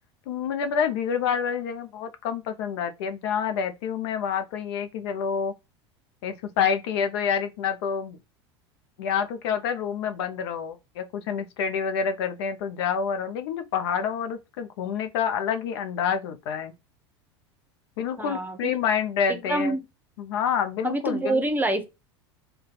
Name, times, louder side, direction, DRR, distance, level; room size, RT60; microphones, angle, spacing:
voice 1, 0.3-5.5 6.2-8.2 9.0-16.7 18.0-19.8 20.2-21.4, left 7 dB, 70° left, 0.6 m, -28 dB
voice 2, 18.2-18.8 19.3-19.8 20.8-21.9, right 2 dB, 10° right, 0.8 m, -26 dB
2.6 x 2.3 x 3.9 m
hypercardioid pair, 85°, 15 cm